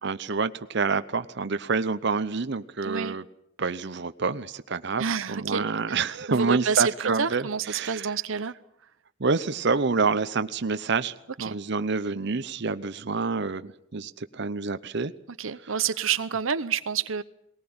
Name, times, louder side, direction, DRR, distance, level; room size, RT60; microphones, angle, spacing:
voice 1, 0.0-3.2 3.6-8.1 9.2-15.1, right 4 dB, 60° right, 0.8 m, -27 dB
voice 2, 2.8-3.2 5.0-8.5 11.4-11.6 15.4-17.2, right 7 dB, 90° right, 0.8 m, -29 dB
20.0 x 19.0 x 8.7 m
head